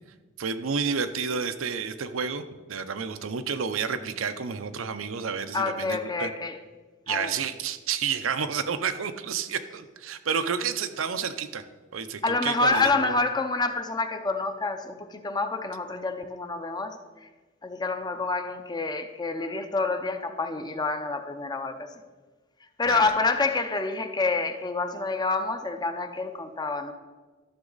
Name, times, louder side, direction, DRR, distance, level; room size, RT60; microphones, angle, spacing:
voice 1, 0.4-6.3 7.1-11.6 11.9-13.1 22.9-23.0, right 6 dB, 85° right, 0.6 m, -30 dB
voice 2, 5.5-6.6 7.1-7.3 12.2-17.3 17.6-22.0 22.8-26.9, left 3 dB, 20° left, 0.6 m, -28 dB
13.0 x 6.2 x 3.9 m
head